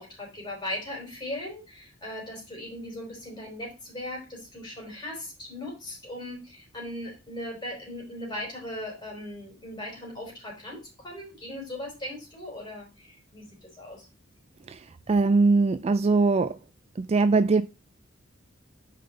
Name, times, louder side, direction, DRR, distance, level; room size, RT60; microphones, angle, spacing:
voice 1, 0.0-14.1, left 1 dB, 20° left, 4.7 m, -38 dB
voice 2, 15.1-16.6 17.0-17.6, right 3 dB, 30° right, 0.3 m, -21 dB
5.6 x 5.6 x 6.5 m
head